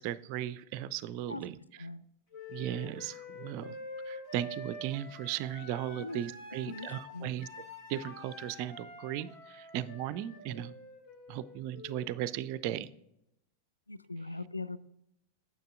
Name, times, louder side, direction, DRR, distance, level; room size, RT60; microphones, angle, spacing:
voice 1, 0.0-1.6 2.5-3.8 4.0-7.5 7.9-10.7 11.3-12.9, right 12 dB, 45° right, 17 dB, 0.3 m, -37 dB
Wind instrument woodwind instrument, 2.3-12.1, left 2 dB, 50° left, 2.4 m, -47 dB
voice 2, 6.7-7.3 13.9-14.8, left 3 dB, 80° left, 14 dB, 0.3 m, -41 dB
9.2 x 7.6 x 2.3 m, 0.82 s
figure-of-eight pair, 90°, 0 cm